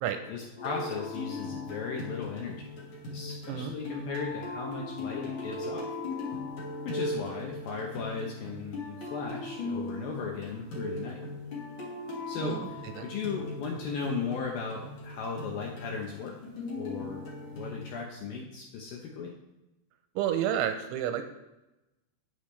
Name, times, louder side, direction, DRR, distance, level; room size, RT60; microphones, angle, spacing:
voice 1, 0.3-2.8 3.1-5.9 6.8-11.2 12.3-16.4 16.8-19.3, left 5 dB, 80° left, 0 dB, 2.0 m, -37 dB
sound 1, 0.6-18.0, left 2 dB, 60° left, 1.2 m, -39 dB
voice 2, 20.2-21.2, right 10 dB, 85° right, 7 dB, 3.0 m, -30 dB
9.2 x 8.4 x 3.3 m, 0.99 s
omnidirectional pair, 5.3 m